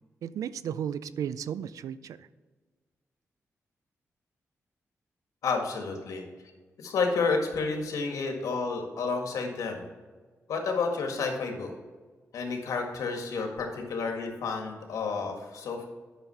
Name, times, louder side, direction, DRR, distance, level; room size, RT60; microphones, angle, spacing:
voice 1, 0.2-2.3, right 9 dB, 90° right, 16 dB, 0.4 m, -34 dB
voice 2, 5.4-6.2 6.8-9.9 10.5-11.7 12.3-15.9, left 4 dB, 90° left, 3 dB, 1.7 m, -30 dB
9.2 x 6.4 x 5.6 m, 1.4 s
cardioid pair, 75°, 6 cm